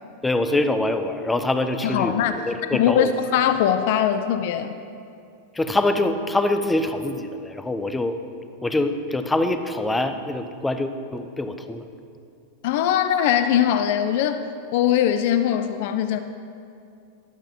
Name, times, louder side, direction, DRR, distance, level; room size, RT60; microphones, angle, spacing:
voice 1, 0.2-3.1 5.5-8.2 8.6-11.9, left 2 dB, 10° left, 9 dB, 0.7 m, -24 dB
voice 2, 1.8-2.3 2.7-4.8 12.6-14.4 14.7-16.2, left 10 dB, 50° left, 10 dB, 0.5 m, -21 dB
13.5 x 12.0 x 3.8 m, 2.4 s
figure-of-eight pair, 90°, 0 cm